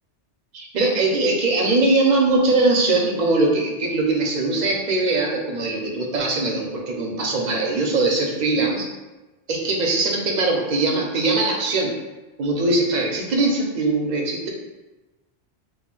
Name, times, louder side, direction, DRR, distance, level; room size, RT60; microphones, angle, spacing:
voice 1, 0.5-8.9 9.5-11.9 12.4-14.5, right 2 dB, 55° right, 0 dB, 0.5 m, -21 dB
2.4 x 2.1 x 3.7 m, 1.1 s
omnidirectional pair, 1.2 m